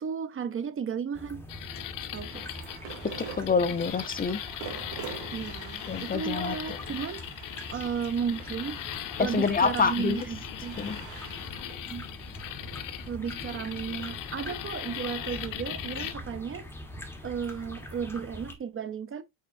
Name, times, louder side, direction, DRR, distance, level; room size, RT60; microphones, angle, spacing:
voice 1, 0.0-1.4 2.1-2.5 5.3-7.2 7.7-8.8 9.2-10.8 11.9-12.0 13.1-16.7 17.2-19.2, right 7 dB, 30° right, 0.7 m, -34 dB
sound 1, 1.1-18.5, left 1 dB, 5° left, 1.6 m, -44 dB
sound 2, 1.5-16.1, left 12 dB, 50° left, 0.9 m, -39 dB
sound 3, 2.1-13.6, right 8 dB, 75° right, 2.9 m, -46 dB
voice 2, 3.4-4.4 5.9-6.5 9.3-10.2 10.8-11.0, left 5 dB, 20° left, 0.7 m, -26 dB
8.3 x 4.3 x 2.7 m
cardioid pair, 115°, 42 cm